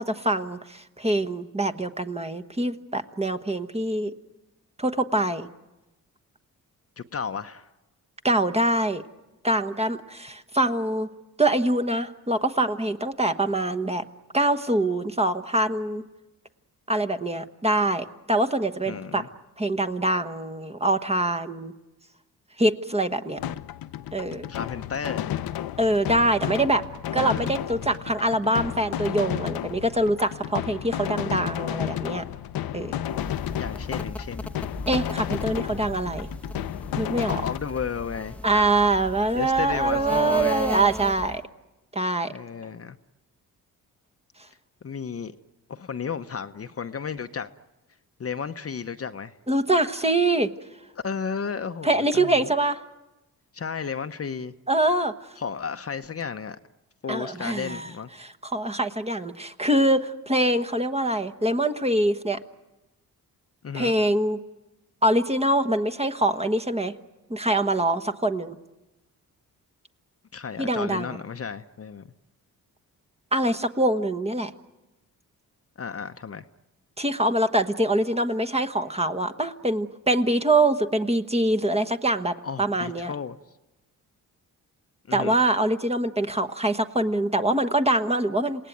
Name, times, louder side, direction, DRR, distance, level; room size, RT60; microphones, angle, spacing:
voice 1, 0.0-4.1 4.8-5.5 8.2-9.0 9.4-11.1 11.4-14.0 14.3-16.0 16.9-19.3 19.6-21.7 22.6-23.4 24.1-24.5 25.8-26.8 27.1-32.2 32.7-32.9 34.9-36.3 37.0-37.3 38.4-41.4 41.9-42.3 49.5-50.5 51.8-52.8 54.7-55.1 57.1-57.9 58.2-62.4 63.7-64.4 65.0-66.9 67.3-68.6 70.6-71.2 73.3-74.5 77.0-83.1 85.1-88.7, right 1 dB, 15° right, 9 dB, 1.2 m, -24 dB
voice 2, 7.0-7.7 18.8-19.3 24.5-25.4 27.2-27.5 33.4-34.5 37.3-38.4 39.3-40.7 42.3-43.0 44.8-45.3 45.7-47.5 48.2-49.3 51.0-52.5 53.5-54.5 55.4-56.6 57.0-58.1 63.6-63.9 70.3-72.0 75.8-76.4 82.4-83.4 85.1-85.4, left 6 dB, 40° left, 8 dB, 0.9 m, -33 dB
sound 1, 23.4-37.6, left 11 dB, 75° left, 0.8 m, -32 dB
sound 2, 33.1-41.4, left 2 dB, 5° left, 0.9 m, -37 dB
28.0 x 18.0 x 9.3 m, 1.1 s
cardioid pair, 70°, 36 cm